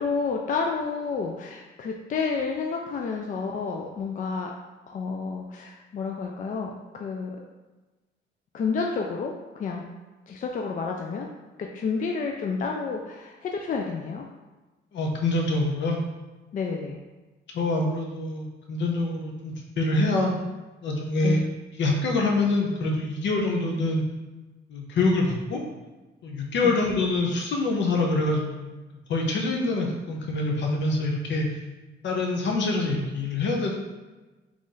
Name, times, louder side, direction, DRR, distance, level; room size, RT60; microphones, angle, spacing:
voice 1, 0.0-4.5 4.9-7.4 8.5-9.9 10.3-11.3 11.6-14.3 16.5-17.0 21.2-21.5 26.6-26.8, left 5 dB, 40° left, 1 dB, 0.4 m, -30 dB
voice 2, 14.9-16.0 17.5-20.3 20.8-21.4 21.8-24.0 24.7-25.6 26.2-28.7 29.1-31.5 32.0-33.8, left 2 dB, 65° left, 0 dB, 0.8 m, -25 dB
3.1 x 2.5 x 3.8 m, 1.2 s
cardioid pair, 90°, 20 cm